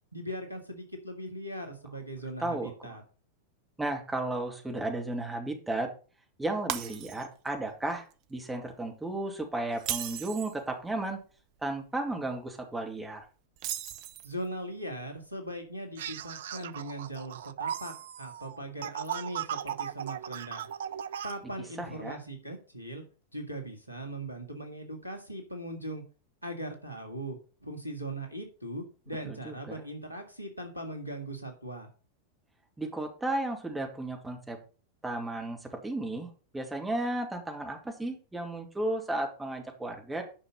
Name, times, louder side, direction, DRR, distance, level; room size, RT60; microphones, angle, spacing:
voice 1, 0.1-3.0 14.2-20.7 21.2-23.0 23.3-26.0 26.4-31.9, right 1 dB, 90° right, 4 dB, 1.8 m, -39 dB
voice 2, 2.4-2.7 3.8-5.9 6.4-11.2 11.6-13.2 21.8-22.2 29.2-29.5 32.8-34.6 35.0-40.2, right 2 dB, 10° right, 2 dB, 2.3 m, -34 dB
Shatter, 6.7-7.5 7.9-8.1 9.7-10.6 13.6-14.5, right 12 dB, 45° right, 0.8 m, -36 dB
sound 1, 16.0-21.3, right 10 dB, 60° right, 0.4 m, -37 dB
10.0 x 5.7 x 5.4 m, 0.37 s
figure-of-eight pair, 90°, 0 cm